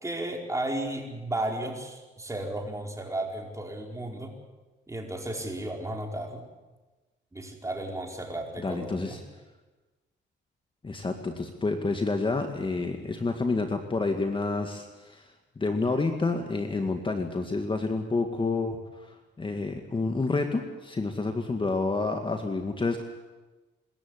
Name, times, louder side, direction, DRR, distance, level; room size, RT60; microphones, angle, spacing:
voice 1, 0.0-4.3 4.9-6.4 7.3-9.2, right 1 dB, 15° right, 1 dB, 4.8 m, -34 dB
voice 2, 8.6-9.2 10.8-15.3 15.6-23.0, left 3 dB, 25° left, 5 dB, 2.0 m, -29 dB
25.5 x 14.0 x 9.8 m, 1.2 s
cardioid pair, 90°, 20 cm